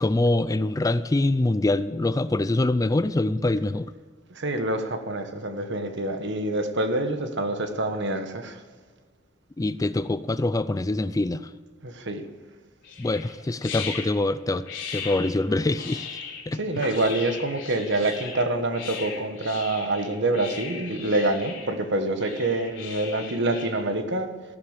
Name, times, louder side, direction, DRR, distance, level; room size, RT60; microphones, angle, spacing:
voice 1, 0.0-3.9 9.6-11.5 13.0-14.7 14.9-16.2 16.5-16.6, left 2 dB, 15° left, 14 dB, 0.4 m, -24 dB
voice 2, 4.3-8.6 11.8-12.2 16.2-24.3, right 2 dB, 60° right, 8 dB, 1.5 m, -26 dB
sound 1, 12.8-23.8, left 6 dB, 65° left, 3.9 m, -38 dB
14.5 x 11.5 x 7.3 m, 1.5 s
head